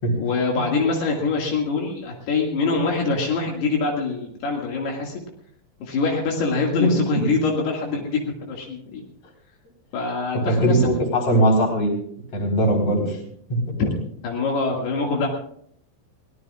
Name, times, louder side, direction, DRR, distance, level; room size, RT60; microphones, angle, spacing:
voice 1, 0.2-5.2 5.8-9.0 9.9-10.9 14.2-15.3, left 3 dB, 75° left, -1 dB, 4.1 m, -24 dB
voice 2, 10.4-12.0 12.3-13.2 13.5-13.6, right 1 dB, 35° left, 0 dB, 4.9 m, -20 dB
23.5 x 18.0 x 2.5 m, 0.66 s
omnidirectional pair, 4.8 m